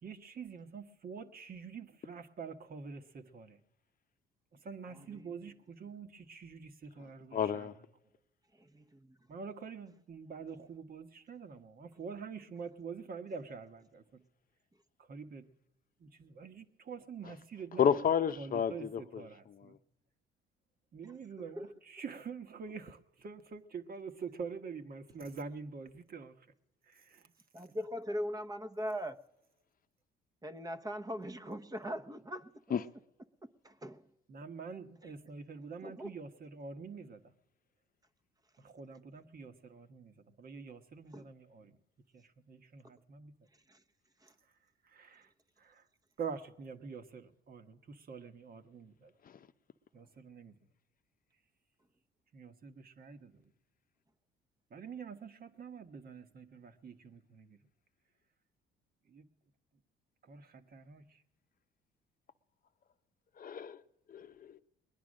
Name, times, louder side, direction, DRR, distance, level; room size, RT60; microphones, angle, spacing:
voice 1, 0.0-3.6 4.6-7.7 9.3-14.2 15.1-15.5 16.0-17.9 18.4-19.8 20.9-26.4 26.9-27.3 34.3-37.2 38.6-41.8 42.1-43.3 44.8-45.3 45.6-45.8 46.2-49.1 49.9-50.5 52.3-53.5 54.7-57.6 59.1-59.3 60.2-61.2, right 5 dB, 45° right, 1.3 m, -46 dB
voice 2, 4.9-5.5 8.5-9.2 21.1-21.7 27.5-29.2 30.4-32.8 33.4-34.1 35.0-35.1 35.8-36.1 41.1-41.3 43.7-43.8 44.2-44.3, equal, 15° right, 0.9 m, -41 dB
voice 3, 7.3-7.7 17.8-19.2 19.6-19.7 32.7-32.8 63.4-63.8 64.1-64.5, left 8 dB, 40° left, 0.8 m, -31 dB
21.0 x 10.5 x 6.4 m
supercardioid pair, 85°, 21 cm